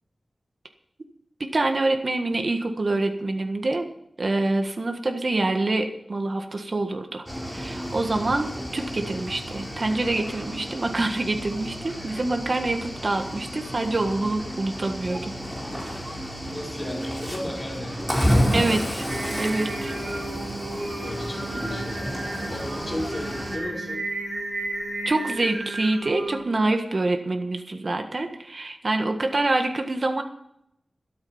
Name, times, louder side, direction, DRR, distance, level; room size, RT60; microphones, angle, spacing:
voice 1, 1.4-3.9 4.2-15.3 18.5-19.0 19.4-20.0 25.0-30.2, right 2 dB, 50° right, 5 dB, 1.6 m, -26 dB
Cricket / Waves surf, 7.3-23.6, equal, 5° right, 4.0 m, -31 dB
voice 2, 16.5-19.4 21.0-22.2 22.5-24.1, left 1 dB, 25° left, -2 dB, 4.9 m, -35 dB
Singing, 19.1-26.7, right 2 dB, 70° right, 5.2 m, -33 dB
13.0 x 13.0 x 5.6 m, 0.76 s
wide cardioid pair, 90°, 0 cm